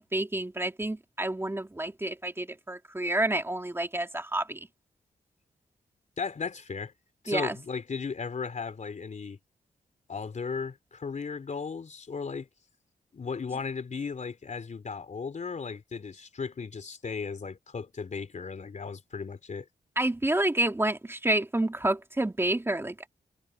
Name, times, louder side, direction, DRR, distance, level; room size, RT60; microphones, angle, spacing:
voice 1, 0.0-4.7 7.3-7.6 20.0-23.1, right 1 dB, 15° right, 2.6 m, -29 dB
voice 2, 6.2-6.9 7.2-9.4 10.1-12.5 13.1-19.7, left 5 dB, 50° left, 3.6 m, -36 dB
cardioid pair, 80°, 16 cm